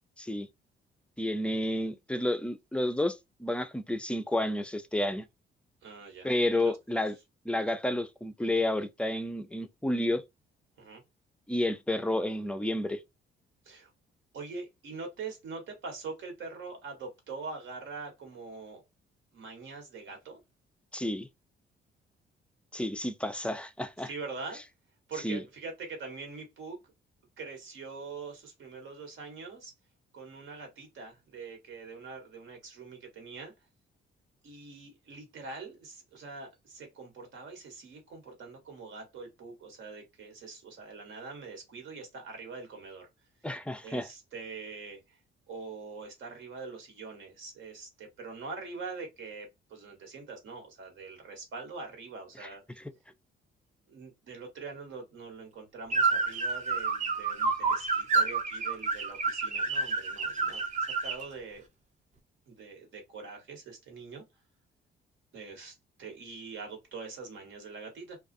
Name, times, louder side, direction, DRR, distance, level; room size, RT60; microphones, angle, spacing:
voice 1, 1.2-5.3 6.2-7.1 7.5-10.2 11.5-13.0 20.9-21.3 22.7-24.1 25.2-25.4 43.4-44.1 52.4-52.5, left 1 dB, 5° left, 0.3 m, -30 dB
voice 2, 5.8-6.8 10.8-11.0 13.6-13.9 14.3-18.8 19.3-20.4 24.0-24.6 25.1-26.8 27.4-29.7 30.1-33.5 34.4-43.1 43.8-45.2 45.5-52.8 53.9-61.6 62.5-64.2 65.3-68.2, right 4 dB, 75° right, 1.3 m, -43 dB
sound 1, 55.9-61.3, right 4 dB, 35° right, 0.7 m, -29 dB
2.4 x 2.3 x 2.5 m
cardioid pair, 90°, 20 cm